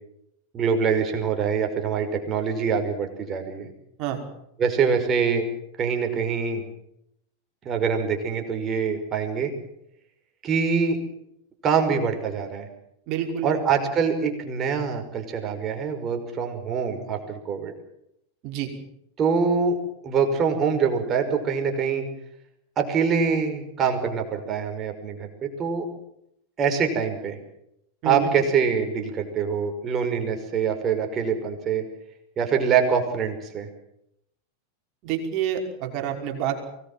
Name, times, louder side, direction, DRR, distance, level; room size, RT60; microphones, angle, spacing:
voice 1, 0.5-3.7 4.6-5.5 5.8-6.6 7.7-9.5 10.4-11.0 11.6-12.7 13.4-17.7 19.2-19.8 20.0-22.0 22.8-25.9 26.6-27.4 28.0-31.9 32.4-33.7, right 6 dB, 30° right, 4 dB, 5.6 m, -24 dB
voice 2, 13.1-13.5 18.4-18.7 28.0-28.3 35.0-36.7, right 9 dB, 50° right, 2 dB, 5.5 m, -28 dB
23.5 x 19.5 x 7.6 m, 0.78 s
hypercardioid pair, 95°, 0 cm